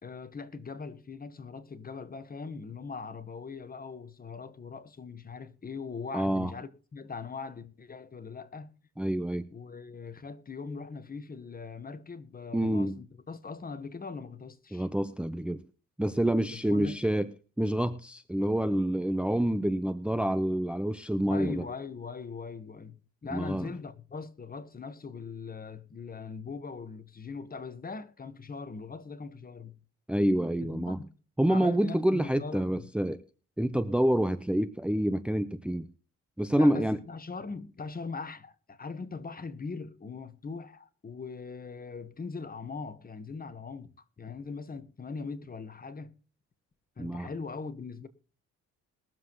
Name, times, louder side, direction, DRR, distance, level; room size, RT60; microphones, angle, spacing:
voice 1, 0.0-8.7 9.5-14.9 16.5-17.0 21.3-29.7 30.6-31.1 31.5-32.9 36.5-46.1 47.0-48.1, left 4 dB, 30° left, 1.4 m, -41 dB
voice 2, 6.1-6.5 9.0-9.5 12.5-13.0 14.7-15.6 16.0-17.3 17.6-21.6 23.3-23.7 30.1-31.0 31.4-33.2 33.6-35.9 36.4-37.0 47.0-47.3, right 1 dB, 5° right, 0.7 m, -27 dB
21.0 x 7.5 x 3.1 m
cardioid pair, 90°, 30 cm